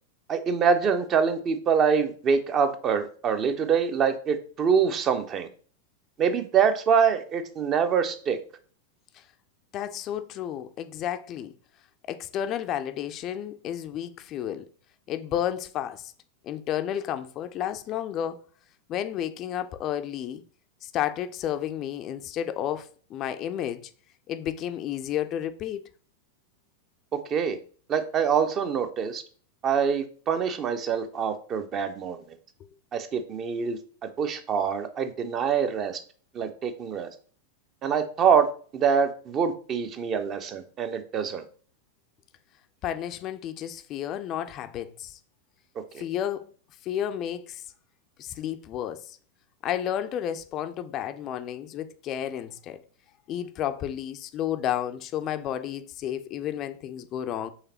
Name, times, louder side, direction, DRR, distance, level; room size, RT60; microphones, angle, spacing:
voice 1, 0.3-5.5 6.2-8.4 27.1-27.6 27.9-29.2 29.6-32.2 32.9-33.8 34.2-36.0 36.3-37.1 37.8-41.4 45.9-46.0, right 6 dB, 30° right, 0.5 m, -25 dB
voice 2, 9.7-11.5 12.1-14.7 15.1-16.1 16.4-18.4 18.9-20.4 20.8-23.9 24.3-25.8 42.8-45.2 46.0-46.5 46.8-47.6 48.2-49.2 49.6-52.8 53.3-57.5, left 10 dB, 35° left, 0.3 m, -32 dB
5.7 x 3.2 x 2.8 m
figure-of-eight pair, 90°, 0 cm